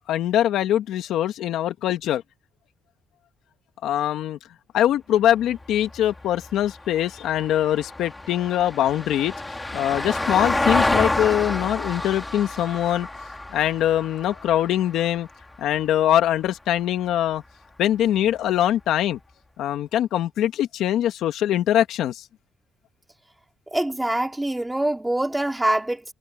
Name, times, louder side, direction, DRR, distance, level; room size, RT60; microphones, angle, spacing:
voice 1, 0.1-2.2 3.8-4.4 4.7-9.3 9.7-13.1 13.5-15.3 15.6-17.4 17.8-19.2 19.6-22.2, left 11 dB, 85° left, 2.0 m, -22 dB
Vehicle, 5.4-15.9 18.2-18.3, left 2 dB, 15° left, 3.1 m, -29 dB
voice 2, 23.7-26.1, right 1 dB, 10° right, 4.3 m, -24 dB
cardioid pair, 90°, 0 cm